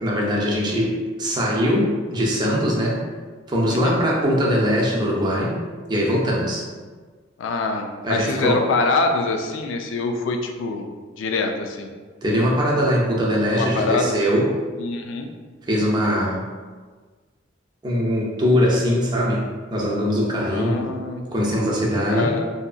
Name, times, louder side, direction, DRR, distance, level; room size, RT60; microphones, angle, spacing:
voice 1, 0.0-3.0 3.5-5.6 5.9-6.7 8.0-8.6 12.2-14.5 15.7-16.4 17.8-19.4 19.7-20.9 21.3-22.3, equal, 20° right, -3 dB, 0.4 m, -21 dB
voice 2, 3.7-4.0 7.4-10.9 11.1-11.9 13.5-14.2 14.8-15.3 20.5-21.2 22.1-22.4, left 3 dB, 75° left, 4 dB, 0.3 m, -24 dB
2.7 x 2.4 x 2.3 m, 1.5 s
head